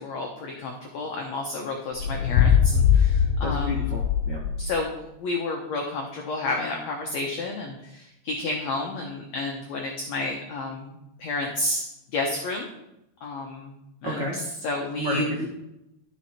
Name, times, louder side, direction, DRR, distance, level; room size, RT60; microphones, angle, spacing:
voice 1, 0.0-4.0 4.6-12.7 13.2-13.7 14.0-15.2, left 2 dB, 70° left, 0 dB, 1.7 m, -31 dB
sound 1, 2.0-4.8, left 8 dB, 90° left, 2.5 m, -21 dB
voice 2, 3.4-4.4 14.0-14.3 15.0-15.5, left 1 dB, 80° right, -2 dB, 1.0 m, -30 dB
12.0 x 6.2 x 4.4 m, 0.87 s
omnidirectional pair, 4.3 m